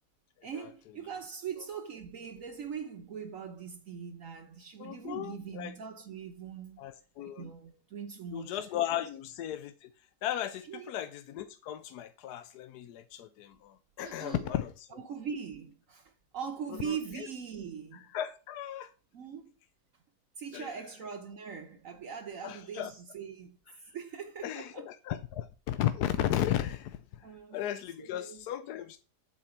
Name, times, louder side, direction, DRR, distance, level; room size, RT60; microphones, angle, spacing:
voice 1, 0.4-6.8 7.4-8.6 10.7-10.9 14.0-14.4 14.9-18.1 19.1-19.5 20.4-23.6 23.9-24.9 27.2-27.6 28.0-28.5, right 7 dB, 60° right, 1.3 m, -41 dB
voice 2, 4.8-5.7 6.8-7.5 8.3-9.9 10.2-15.0 16.8-17.3 17.9-18.9 20.5-20.7 22.4-22.9 24.4-29.0, left 12 dB, 80° left, 1.2 m, -35 dB
8.8 x 4.2 x 7.2 m
omnidirectional pair, 1.7 m